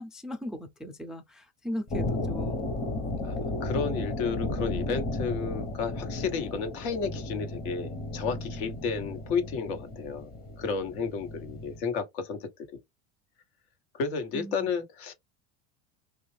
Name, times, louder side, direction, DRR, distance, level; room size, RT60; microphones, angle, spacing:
voice 1, 0.0-2.7 14.3-14.7, equal, ahead, 0.3 m, -38 dB
sound 1, 1.9-11.8, left 2 dB, 30° left, 1.0 m, -34 dB
voice 2, 3.2-10.3 10.6-12.5 13.9-15.1, left 5 dB, 75° left, 1.3 m, -32 dB
3.4 x 2.4 x 3.2 m
supercardioid pair, 125°, 32 cm